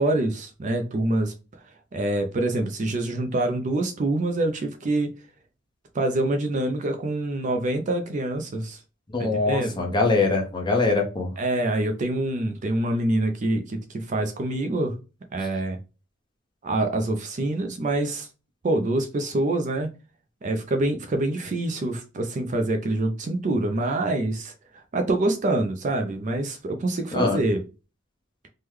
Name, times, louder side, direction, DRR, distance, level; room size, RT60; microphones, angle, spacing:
voice 1, 0.0-1.3 1.9-5.1 5.9-8.8 9.2-9.8 11.4-15.0 15.3-15.8 16.6-18.3 18.6-19.9 20.4-27.6, right 2 dB, 35° right, 5 dB, 0.4 m, -26 dB
voice 2, 9.1-11.3 27.1-27.4, left 3 dB, 20° left, 1 dB, 0.7 m, -23 dB
3.5 x 2.1 x 3.1 m, 0.31 s
head